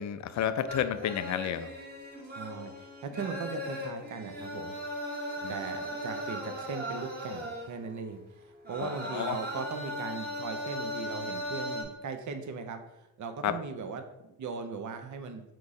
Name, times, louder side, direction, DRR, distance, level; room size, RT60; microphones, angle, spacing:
voice 1, 0.0-1.7 5.4-5.5 8.8-9.4 13.4-13.6, left 10 dB, 45° left, 11 dB, 0.4 m, -31 dB
sound 1, 0.7-8.0 8.5-11.8, equal, 25° right, 1.3 m, -38 dB
voice 2, 2.3-4.7 5.0-15.4, right 5 dB, 45° right, 7 dB, 0.7 m, -39 dB
4.5 x 2.5 x 4.1 m, 0.93 s
supercardioid pair, 55°, 40 cm